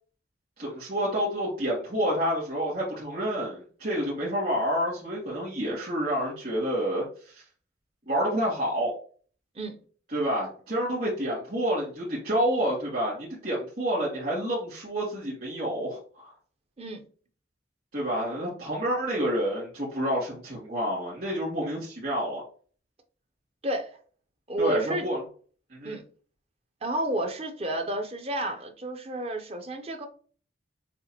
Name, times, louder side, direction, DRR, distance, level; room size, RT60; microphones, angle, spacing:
voice 1, 0.6-7.4 8.1-8.9 10.1-16.3 17.9-22.4 24.6-25.2 25.7-26.0, equal, 50° right, 2.2 m, -29 dB
voice 2, 16.8-17.1 23.6-24.0 24.5-25.0 25.8-26.0 26.8-30.1, right 1 dB, 30° right, 0.6 m, -31 dB
6.8 x 2.5 x 2.8 m
head